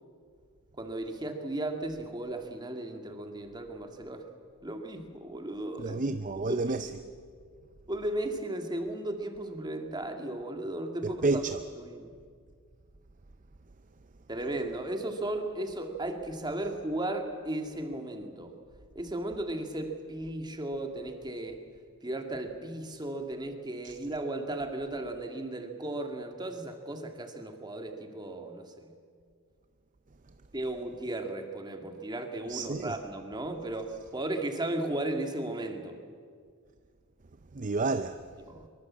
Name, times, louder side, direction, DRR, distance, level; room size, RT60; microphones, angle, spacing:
voice 1, 0.8-4.3 4.6-6.0 6.4-6.8 7.9-11.4 11.8-12.1 14.3-18.6 18.9-21.6 22.0-28.9 30.5-36.0 38.4-38.7, right 1 dB, 20° right, 2.1 m, -35 dB
voice 2, 5.8-6.9 11.0-11.6 23.8-24.0 32.5-33.0 37.5-38.3, right 3 dB, 35° right, 0.6 m, -30 dB
24.0 x 23.5 x 7.4 m
head